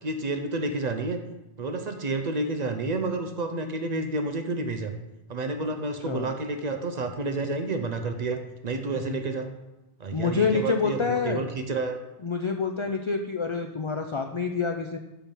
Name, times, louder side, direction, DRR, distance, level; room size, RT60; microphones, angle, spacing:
voice 1, 0.0-1.2 1.6-4.9 5.3-9.5 10.0-12.0, right 3 dB, 50° right, 6 dB, 0.6 m, -30 dB
voice 2, 8.9-9.4 10.1-11.4 12.2-15.0, left 5 dB, 55° left, 5 dB, 0.3 m, -27 dB
7.1 x 4.5 x 5.4 m, 0.99 s
omnidirectional pair, 1.1 m